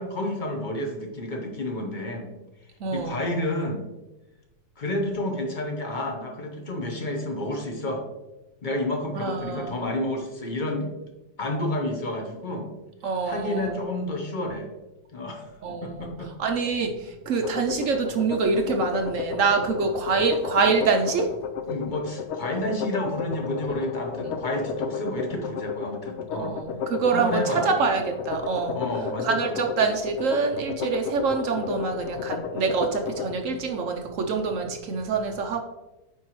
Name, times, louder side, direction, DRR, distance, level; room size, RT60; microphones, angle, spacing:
voice 1, 0.0-2.3 2.9-3.8 4.8-8.0 8.6-10.9 11.4-12.7 13.2-14.7 15.1-15.5 15.8-16.3 21.7-26.6 27.1-27.7 28.7-29.6, left 1 dB, 35° left, 3 dB, 0.9 m, -30 dB
voice 2, 2.8-3.2 9.1-9.7 13.0-13.8 15.6-21.3 24.2-24.4 26.3-28.8 29.2-35.6, right 5 dB, 65° right, 4 dB, 0.8 m, -26 dB
sound 1, 17.3-33.3, left 7 dB, 75° left, 0.6 m, -32 dB
9.0 x 4.7 x 3.1 m, 1.0 s
omnidirectional pair, 1.8 m